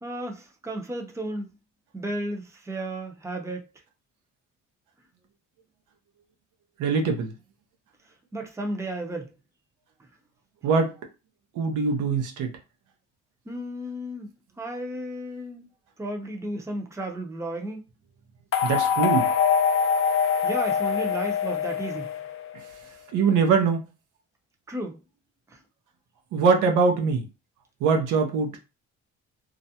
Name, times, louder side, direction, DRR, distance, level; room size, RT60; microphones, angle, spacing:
voice 1, 0.0-1.5 1.9-3.7 8.3-9.3 13.5-15.6 16.0-17.9 20.4-22.1 24.7-25.0, right 1 dB, 10° right, 0.6 m, -33 dB
voice 2, 6.8-7.3 10.6-10.9 11.6-12.5 18.6-19.3 23.1-23.8 26.3-27.2 27.8-28.5, right 5 dB, 90° right, 0.6 m, -22 dB
sound 1, 18.5-22.7, left 7 dB, 45° left, 0.4 m, -24 dB
2.4 x 2.1 x 2.7 m
cardioid pair, 90°, 30 cm